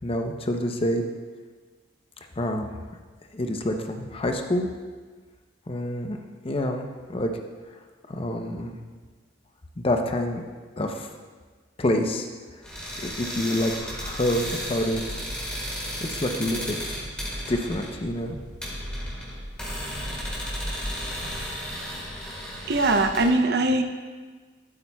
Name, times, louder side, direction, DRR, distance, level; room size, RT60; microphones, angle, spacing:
voice 1, 0.0-1.0 2.4-2.7 3.3-4.7 5.7-6.2 6.4-7.3 8.1-8.8 9.8-10.4 10.8-11.1 11.8-12.3 13.0-15.2 16.1-16.9 17.5-18.4, left 1 dB, 35° left, 4 dB, 0.6 m, -27 dB
sound 1, 12.6-23.3, equal, 5° left, 2.5 m, -34 dB
voice 2, 22.7-23.8, right 2 dB, 65° right, 6 dB, 0.6 m, -21 dB
12.5 x 8.5 x 2.3 m, 1.4 s
head